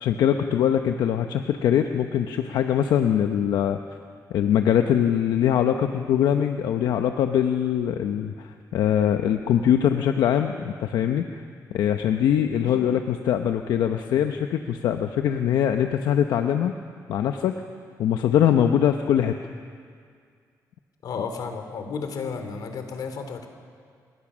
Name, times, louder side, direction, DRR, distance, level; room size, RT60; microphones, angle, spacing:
voice 1, 0.0-3.8 4.3-11.4 11.7-16.7 17.1-17.5 18.0-19.3, left 9 dB, 90° left, 6 dB, 0.9 m, -22 dB
voice 2, 21.0-23.5, left 5 dB, 70° left, 6 dB, 2.9 m, -32 dB
27.5 x 20.5 x 6.3 m, 2.1 s
cardioid pair, 120°, 7 cm